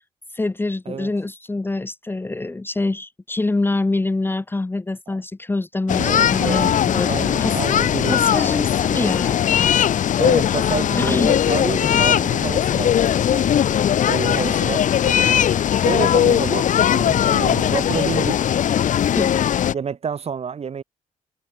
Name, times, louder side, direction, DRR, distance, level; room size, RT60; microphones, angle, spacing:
voice 1, 0.3-7.6 8.1-9.7 11.0-11.4 19.1-19.3, left 2 dB, 15° left, 0.8 m, -25 dB
sound 1, 5.9-19.7, left 10 dB, 65° left, 0.6 m, -19 dB
voice 2, 6.0-8.2 10.2-12.9 13.3-13.6 14.1-15.5 15.8-18.5 19.7-20.8, right 7 dB, 45° right, 1.4 m, -29 dB
wide cardioid pair, 150°, 14 cm